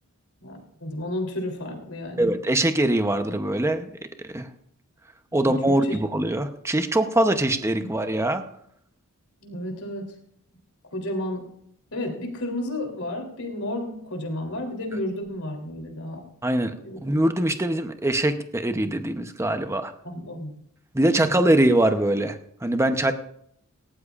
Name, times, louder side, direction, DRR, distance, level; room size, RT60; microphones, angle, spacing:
voice 1, 0.4-2.3 5.3-6.0 7.8-7.9 9.4-10.1 10.9-11.5 11.9-16.3 16.8-17.0 20.0-20.5 21.1-21.5, left 1 dB, 80° left, 2 dB, 3.4 m, -32 dB
voice 2, 2.2-3.9 4.2-4.5 5.3-8.4 16.4-16.7 17.0-19.9 20.9-23.1, right 1 dB, 15° right, 7 dB, 0.8 m, -23 dB
18.0 x 17.5 x 2.5 m, 0.70 s
head